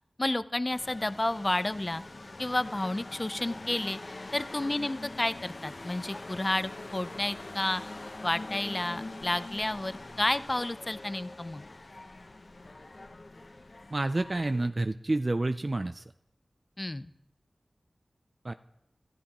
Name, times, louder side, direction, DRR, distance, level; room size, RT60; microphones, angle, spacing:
voice 1, 0.2-2.0 2.4-4.0 4.3-7.8 8.2-11.6 16.8-17.1, left 1 dB, 30° left, 13 dB, 0.5 m, -31 dB
sound 1, 0.7-14.7, left 2 dB, 55° left, 1.1 m, -44 dB
voice 2, 13.9-16.0 18.4-18.5, right 2 dB, 45° right, 9 dB, 0.4 m, -29 dB
25.0 x 13.0 x 3.0 m, 0.85 s
wide cardioid pair, 60°, 0 cm